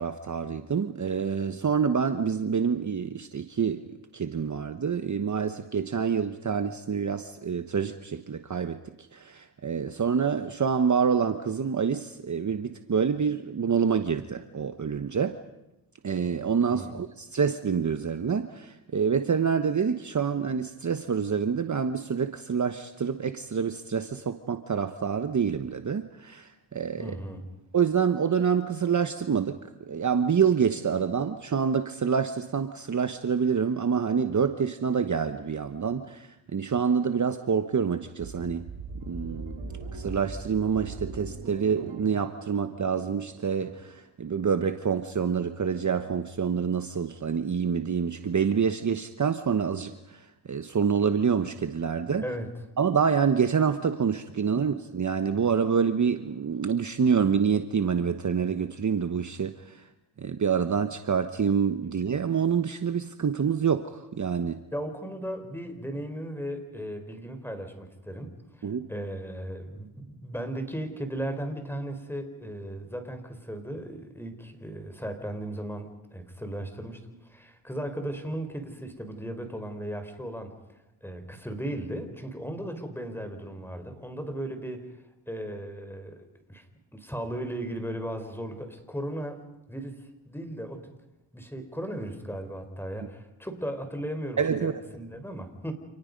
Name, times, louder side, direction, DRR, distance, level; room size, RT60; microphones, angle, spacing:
voice 1, 0.0-8.8 9.1-15.4 16.0-27.1 27.7-29.6 29.9-38.6 39.1-39.6 39.9-50.2 50.5-52.2 52.8-59.8 60.2-64.6 68.6-68.9 94.4-94.7, right 6 dB, 35° right, 9 dB, 1.2 m, -27 dB
voice 2, 16.7-17.0 27.0-27.6 52.2-52.5 54.5-54.6 64.7-80.5 81.0-84.9 85.3-86.6 86.9-89.4 89.7-90.9 91.3-95.7, right 1 dB, 5° left, 7 dB, 4.4 m, -36 dB
sound 1, 38.2-43.8, right 3 dB, 75° right, 6.7 m, -41 dB
29.0 x 28.5 x 5.3 m, 0.96 s
cardioid pair, 80°, 48 cm